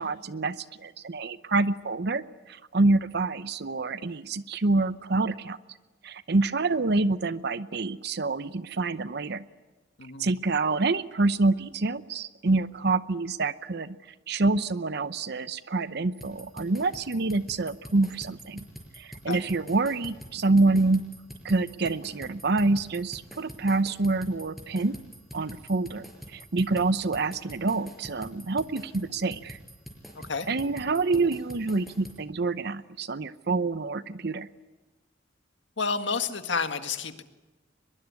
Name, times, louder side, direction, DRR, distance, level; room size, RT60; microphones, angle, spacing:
voice 1, 0.0-5.6 6.0-9.4 10.2-14.0 14.3-18.6 19.0-21.0 21.4-25.0 25.3-29.6 30.5-34.5, right 3 dB, 60° right, 14 dB, 0.8 m, -27 dB
voice 2, 10.0-10.3 19.3-19.4 30.2-30.5 35.8-37.2, left 5 dB, 80° left, 8 dB, 1.8 m, -30 dB
sound 1, 16.2-32.2, equal, ahead, 5.6 m, -45 dB
23.0 x 22.0 x 9.6 m, 1.2 s
head